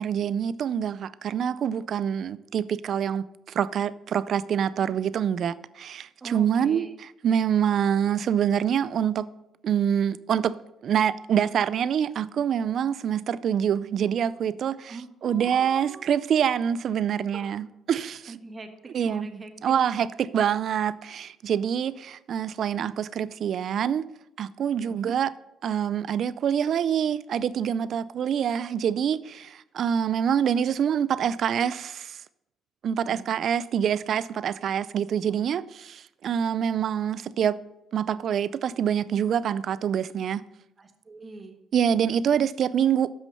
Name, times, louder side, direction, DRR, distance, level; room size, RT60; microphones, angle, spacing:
voice 1, 0.0-9.3 9.6-10.6 10.8-18.4 18.9-19.3 19.6-24.1 24.4-25.3 25.6-32.2 32.8-37.6 37.9-40.4 41.7-43.1, right 8 dB, 60° right, 0.4 m, -26 dB
voice 2, 6.2-6.9 14.9-16.0 17.3-17.4 18.3-19.5 24.9-25.1 33.0-33.3 40.8-41.5, right 3 dB, 35° right, 1.3 m, -43 dB
8.6 x 6.1 x 5.6 m
cardioid pair, 80°, 0 cm